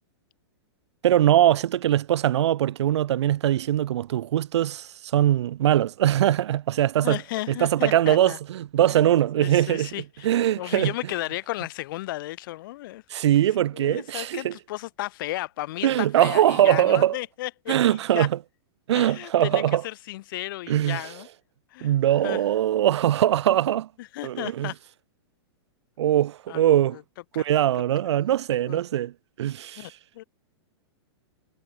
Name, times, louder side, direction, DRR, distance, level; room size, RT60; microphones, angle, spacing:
voice 1, 1.0-7.2 7.5-9.9 10.2-10.9 13.1-14.5 15.8-17.2 17.7-18.4 18.9-19.8 20.7-21.0 21.8-23.9 24.2-24.7 26.0-27.0 27.3-29.1 29.4-29.9, right 12 dB, 80° right, 0.6 m, -22 dB
voice 2, 7.0-8.4 8.8-10.0 10.6-13.0 13.7-18.3 19.0-21.3 21.7-21.9 22.2-22.4 24.0-24.8 26.5-27.0 27.3-27.4 28.7-28.8 29.8-30.2, left 17 dB, 50° left, 2.1 m, -34 dB
supercardioid pair, 160°, 14 cm